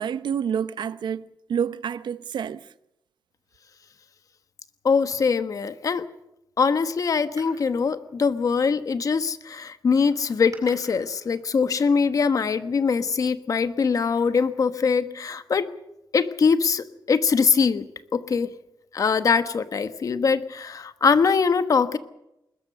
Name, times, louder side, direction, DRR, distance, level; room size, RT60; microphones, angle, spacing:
voice 1, 0.0-2.6, right 8 dB, 85° right, 0.8 m, -28 dB
voice 2, 4.8-6.0 6.6-15.7 16.1-17.9 18.1-18.5 18.9-22.0, left 5 dB, 50° left, 1.2 m, -22 dB
Door, 7.2-9.0 9.9-12.8 13.7-14.9 15.2-15.3, right 3 dB, 45° right, 7.3 m, -53 dB
21.0 x 20.5 x 6.7 m
wide cardioid pair, 150°, 8 cm